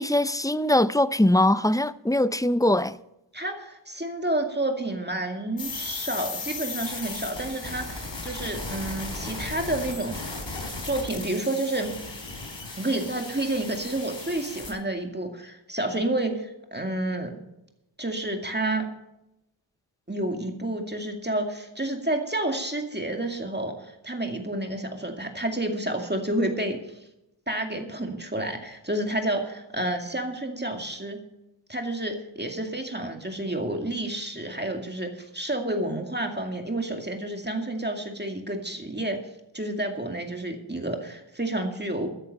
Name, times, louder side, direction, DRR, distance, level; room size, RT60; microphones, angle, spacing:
voice 1, 0.0-2.9, left 1 dB, 10° left, 0.5 m, -22 dB
voice 2, 3.3-10.4 10.8-11.9 12.8-17.3 18.0-18.9 20.1-27.0 27.5-31.2 31.7-39.2 39.5-42.1, right 1 dB, 20° right, 2.2 m, -30 dB
sound 1, 5.6-14.7, left 3 dB, 65° left, 3.9 m, -36 dB
14.0 x 10.0 x 5.4 m
wide cardioid pair, 70°, 47 cm